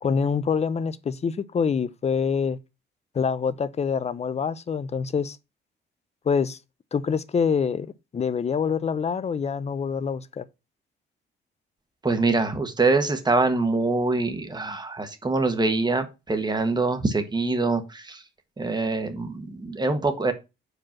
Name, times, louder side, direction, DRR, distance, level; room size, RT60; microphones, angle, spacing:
voice 1, 0.0-2.6 3.1-5.4 6.3-6.6 6.9-7.9 8.1-10.4, left 6 dB, 35° left, 0.6 m, -25 dB
voice 2, 12.0-18.2 18.6-20.3, right 3 dB, 20° right, 1.3 m, -24 dB
5.0 x 4.5 x 5.8 m
cardioid pair, 90°, 20 cm